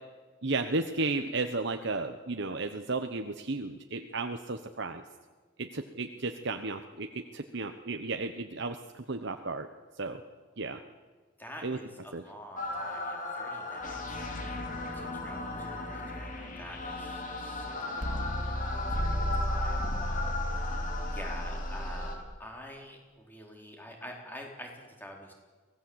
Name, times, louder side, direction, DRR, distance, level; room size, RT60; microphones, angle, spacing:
voice 1, 0.4-5.0 5.6-9.7 10.0-10.2 10.6-10.8 11.6-11.8 12.1-12.2, right 3 dB, 55° right, 6 dB, 1.1 m, -34 dB
voice 2, 11.4-25.3, equal, 10° left, 1 dB, 4.2 m, -48 dB
sound 1, 12.6-22.2, left 1 dB, 40° left, 3.7 m, -34 dB
24.5 x 17.5 x 8.1 m, 1.4 s
head